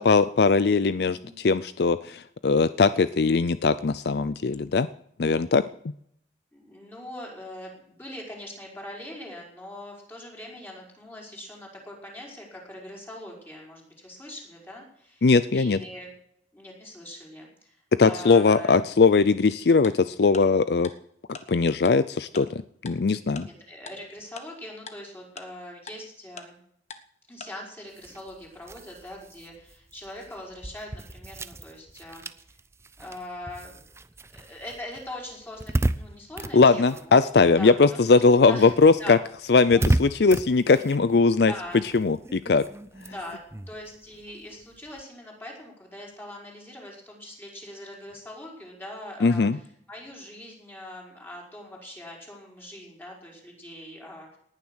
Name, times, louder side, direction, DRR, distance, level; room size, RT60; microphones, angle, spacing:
voice 1, 0.0-4.9 5.2-5.6 15.2-15.8 18.0-20.9 21.3-23.5 36.5-39.2 39.5-41.5 41.9-42.6 49.2-49.6, left 4 dB, 60° left, 14 dB, 0.5 m, -20 dB
voice 2, 6.5-15.3 15.5-16.1 16.5-18.8 23.2-26.6 27.3-32.3 33.0-33.8 34.3-37.1 37.6-38.2 38.5-39.1 39.6-39.8 41.5-41.8 43.1-49.6 49.9-54.4, left 1 dB, 10° left, -1 dB, 5.4 m, -42 dB
Tick-tock, 19.8-19.9 20.3-20.4 20.8-20.9 21.3-21.4 21.9-22.0 22.4-22.5 22.9-23.0 23.4-23.5 23.9-24.0 24.4-24.5 24.9-25.0 25.4-25.5 25.9-26.0 26.4-26.5 26.9-27.0 27.4-27.5, left 5 dB, 40° left, 1.3 m, -40 dB
sound 1, 27.9-37.8 38.1-45.0, right 1 dB, 15° right, 0.5 m, -34 dB
19.0 x 10.5 x 6.4 m, 0.71 s
head